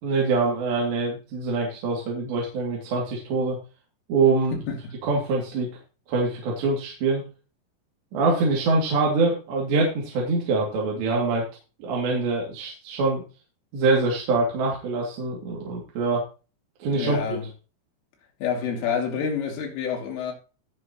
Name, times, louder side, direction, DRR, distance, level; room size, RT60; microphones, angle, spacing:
voice 1, 0.0-3.6 4.1-4.6 5.0-5.7 6.1-7.2 8.1-11.4 11.8-13.2 13.7-16.2 16.8-17.4, right 3 dB, 65° right, 4.8 m, -24 dB
voice 2, 16.9-17.5 18.4-20.3, left 6 dB, 85° left, 5.3 m, -28 dB
18.5 x 6.8 x 3.0 m
omnidirectional pair, 5.5 m